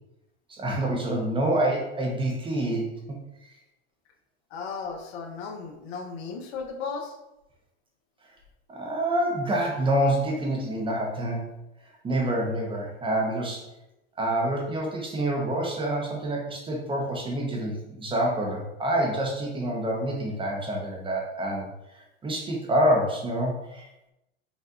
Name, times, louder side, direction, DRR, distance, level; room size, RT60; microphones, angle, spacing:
voice 1, 0.5-3.2 8.7-11.5 12.0-13.7 14.2-21.7 21.9-24.1, right 1 dB, 15° right, -1 dB, 0.7 m, -27 dB
voice 2, 4.5-7.2, left 5 dB, 65° left, 3 dB, 0.9 m, -35 dB
5.4 x 2.4 x 3.7 m, 0.91 s
supercardioid pair, 130°, 34 cm